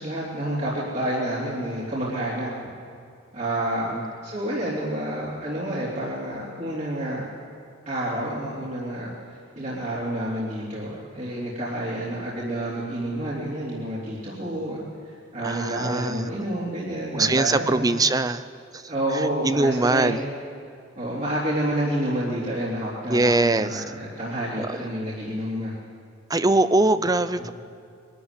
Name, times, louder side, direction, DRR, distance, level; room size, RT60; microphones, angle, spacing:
voice 1, 0.0-2.5 3.3-3.9 4.2-7.2 7.8-17.8 18.9-20.2 20.9-25.7 27.4-27.5, right 1 dB, 35° right, -7 dB, 3.4 m, -29 dB
voice 2, 15.4-16.3 17.1-18.4 18.7-18.8 19.4-20.2 23.1-23.8 24.6-24.8 26.3-27.5, right 2 dB, 20° right, 13 dB, 0.5 m, -22 dB
22.5 x 13.0 x 10.0 m, 2.4 s
head